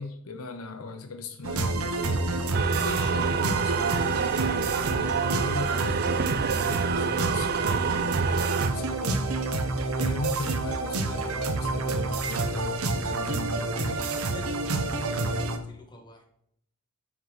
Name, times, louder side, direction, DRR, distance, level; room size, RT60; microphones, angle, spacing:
voice 1, 0.0-2.4 2.7-9.3 9.9-14.0, left 3 dB, 75° left, 0.8 m, -38 dB
sound 1, 1.4-15.6, right 2 dB, 85° right, 1.0 m, -28 dB
sound 2, 2.5-8.7, right 8 dB, 45° right, 0.4 m, -29 dB
voice 2, 13.7-16.2, equal, 20° left, 1.6 m, -46 dB
9.1 x 6.0 x 4.0 m
head